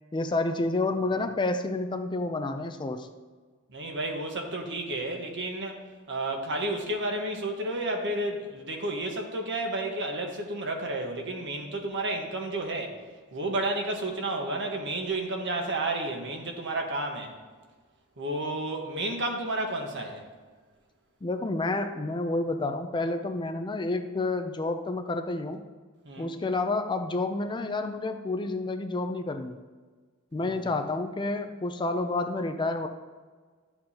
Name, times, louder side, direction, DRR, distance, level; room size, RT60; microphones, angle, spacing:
voice 1, 0.1-3.1 21.2-25.6 26.2-29.5 30.3-32.9, left 2 dB, 20° left, 7 dB, 0.5 m, -29 dB
voice 2, 3.7-5.8 6.1-13.0 13.3-17.3 18.2-20.2 26.0-26.3, right 2 dB, 55° right, 2 dB, 1.3 m, -31 dB
12.0 x 7.7 x 2.9 m, 1.4 s
head